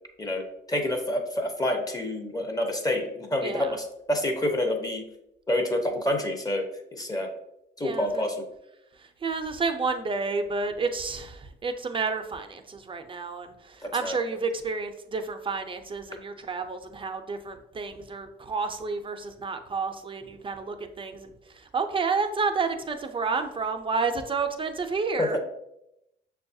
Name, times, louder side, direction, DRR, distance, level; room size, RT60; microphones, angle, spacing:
voice 1, 0.2-5.0 5.5-6.6 6.9-7.3 7.8-8.4 13.8-14.2 25.2-25.4, left 1 dB, 20° left, 4 dB, 0.7 m, -28 dB
voice 2, 3.4-3.8 7.8-8.2 9.0-25.4, right 4 dB, 25° right, 7 dB, 0.5 m, -30 dB
6.1 x 2.3 x 2.6 m, 0.84 s
cardioid pair, 90°, 20 cm